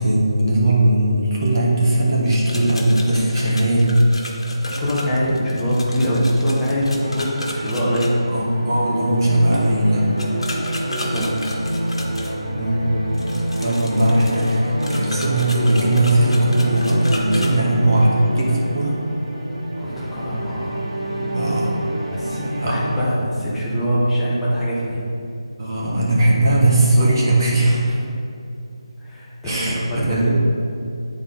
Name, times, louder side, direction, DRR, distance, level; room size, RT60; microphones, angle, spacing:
voice 1, 0.0-3.9 8.3-10.2 12.5-13.0 13.6-19.0 21.3-21.9 22.6-22.8 25.6-27.9 29.4-30.3, right 1 dB, 40° right, -4 dB, 1.6 m, -19 dB
sound 1, 2.2-8.1 10.2-12.3 13.1-17.5, left 1 dB, 65° left, 1.4 m, -33 dB
voice 2, 4.5-8.2 10.9-11.6 19.8-20.8 22.1-25.0 27.9-28.0 29.0-30.3, equal, 5° left, -11 dB, 1.0 m, -23 dB
sound 2, 7.0-23.0, right 1 dB, 55° right, 1.4 m, -27 dB
9.6 x 4.1 x 3.7 m, 2.6 s
figure-of-eight pair, 170°, 3 cm